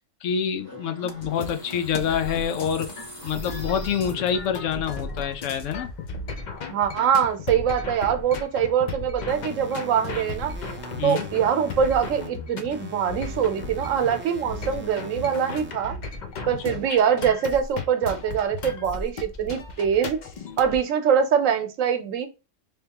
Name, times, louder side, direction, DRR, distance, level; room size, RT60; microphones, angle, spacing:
voice 1, 0.2-2.9 3.2-5.9 11.0-11.3 16.7-16.8, left 8 dB, 75° left, 0.9 m, -26 dB
sound 1, 0.6-4.8, equal, 15° left, 1.6 m, -42 dB
sound 2, 1.1-20.8, left 4 dB, 50° left, 0.6 m, -36 dB
voice 2, 6.7-10.5 11.0-16.0 16.5-20.2 20.6-22.3, right 8 dB, 85° right, 1.1 m, -23 dB
sound 3, 9.3-12.3 12.7-15.7, right 1 dB, 15° right, 0.3 m, -41 dB
3.4 x 3.1 x 2.8 m
omnidirectional pair, 1.3 m